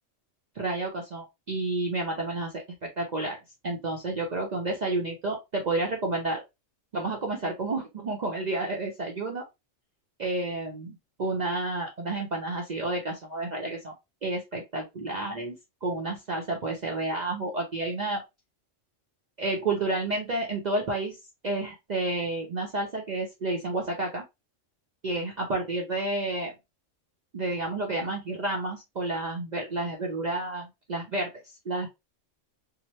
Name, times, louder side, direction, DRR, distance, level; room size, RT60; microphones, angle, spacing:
voice 1, 0.5-2.5 2.8-6.4 6.9-9.4 10.2-13.9 14.2-18.2 19.4-21.2 21.4-24.2 25.0-26.5 27.3-31.3 31.7-31.9, right 2 dB, 50° right, 0 dB, 0.5 m, -30 dB
2.8 x 2.0 x 2.9 m, 0.23 s
omnidirectional pair, 1.3 m